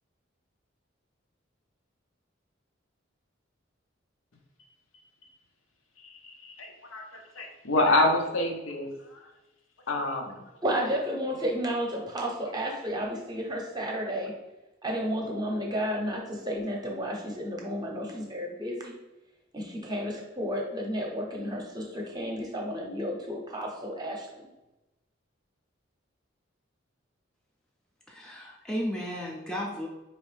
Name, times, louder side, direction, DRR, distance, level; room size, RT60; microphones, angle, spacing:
voice 1, 6.0-9.3 9.9-10.4, left 2 dB, 85° left, 3 dB, 0.7 m, -28 dB
voice 2, 10.6-14.3 14.8-19.0 19.5-24.5, equal, 20° right, 0 dB, 0.8 m, -32 dB
voice 3, 28.1-29.9, equal, 5° left, -2 dB, 0.4 m, -34 dB
4.4 x 3.0 x 3.2 m, 0.99 s
head